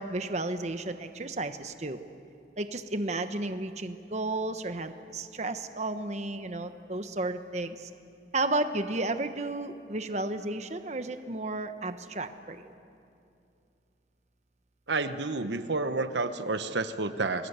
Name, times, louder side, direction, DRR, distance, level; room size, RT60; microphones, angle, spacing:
voice 1, 0.0-2.0 2.6-7.9 8.3-12.6, right 2 dB, 40° right, 8 dB, 1.0 m, -33 dB
voice 2, 14.9-17.5, right 3 dB, 80° right, 10 dB, 1.0 m, -30 dB
29.5 x 21.5 x 8.2 m, 2.6 s
head